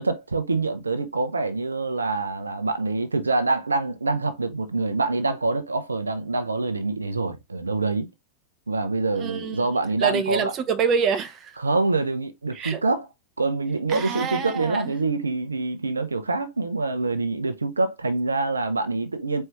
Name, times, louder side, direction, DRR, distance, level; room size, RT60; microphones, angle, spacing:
voice 1, 0.0-8.1 8.7-10.5 11.6-13.1 13.4-19.5, right 3 dB, 75° right, 0.7 m, -25 dB
voice 2, 9.2-9.7 10.0-11.6 12.5-12.8 13.9-14.9, right 6 dB, 30° right, 0.7 m, -26 dB
4.5 x 3.3 x 3.2 m
figure-of-eight pair, 90°, 0 cm